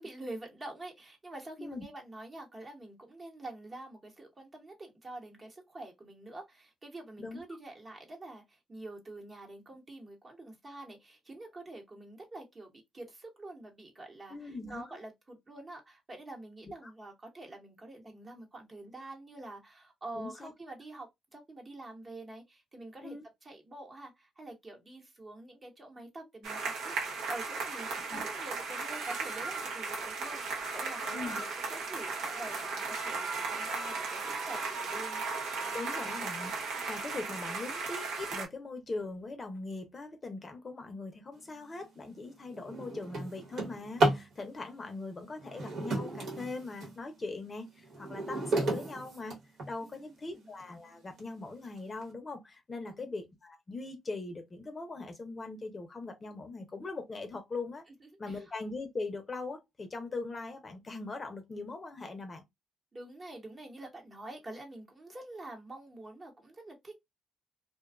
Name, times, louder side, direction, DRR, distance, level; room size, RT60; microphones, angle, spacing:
voice 1, 0.0-23.2 23.4-35.2 49.8-50.5 52.8-53.1 58.0-58.4 62.9-67.1, right 2 dB, 30° right, 1.0 m, -47 dB
voice 2, 14.3-15.0 16.6-16.7 20.1-20.5 23.0-23.2 28.1-28.2 31.0-31.5 35.7-49.4 49.7-57.8 58.2-62.4, left 3 dB, 30° left, 0.6 m, -41 dB
sound 1, 26.4-38.5, right 4 dB, 90° right, 0.9 m, -36 dB
Drawer open or close, 41.6-41.9 42.3-44.3 45.4-47.0 47.5-49.9 50.6-50.7 51.2-51.3 51.6-52.0, right 2 dB, 70° right, 1.2 m, -33 dB
2.5 x 2.2 x 2.3 m
cardioid pair, 90°, 0 cm